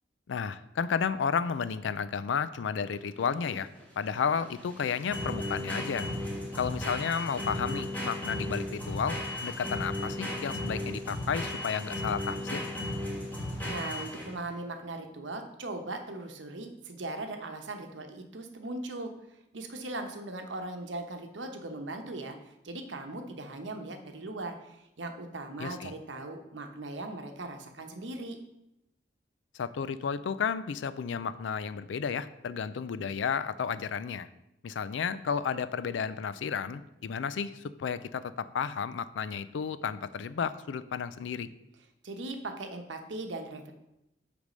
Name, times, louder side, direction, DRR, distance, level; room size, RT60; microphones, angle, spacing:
voice 1, 0.3-3.7 4.0-6.1 6.5-12.6 25.6-25.9 29.6-34.3 34.6-37.5 37.8-41.5, left 6 dB, 80° left, 14 dB, 0.4 m, -32 dB
sound 1, 2.9-14.5, left 1 dB, 10° left, 1.3 m, -35 dB
voice 2, 13.6-19.1 19.5-22.4 22.6-28.4 42.0-43.7, right 2 dB, 80° right, 5 dB, 0.9 m, -39 dB
8.1 x 3.4 x 5.2 m, 0.87 s
head